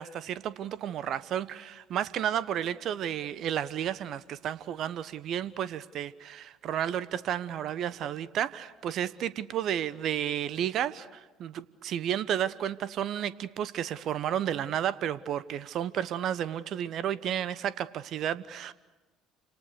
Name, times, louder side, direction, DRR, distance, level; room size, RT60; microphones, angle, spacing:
voice 1, 0.0-18.7, right 10 dB, 55° right, 16 dB, 1.1 m, -32 dB
29.5 x 27.0 x 6.8 m, 1.2 s
hypercardioid pair, 60°, 0 cm